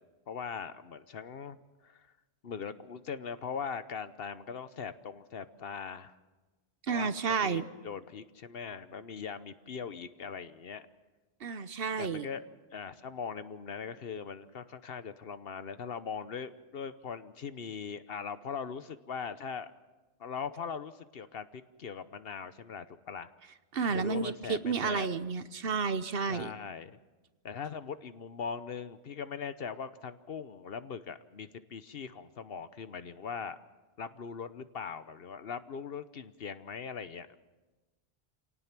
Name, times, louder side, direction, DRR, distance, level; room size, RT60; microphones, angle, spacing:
voice 1, 0.3-2.1 2.4-6.2 6.9-10.9 12.0-12.5 12.7-19.7 20.2-23.3 23.9-25.1 26.3-27.0 27.4-33.6 34.0-37.4, left 6 dB, 65° left, 12 dB, 1.1 m, -40 dB
voice 2, 6.9-7.7 11.4-12.3 23.7-26.5, right 5 dB, 65° right, 13 dB, 1.1 m, -31 dB
27.5 x 18.0 x 6.0 m, 1.2 s
omnidirectional pair, 1.1 m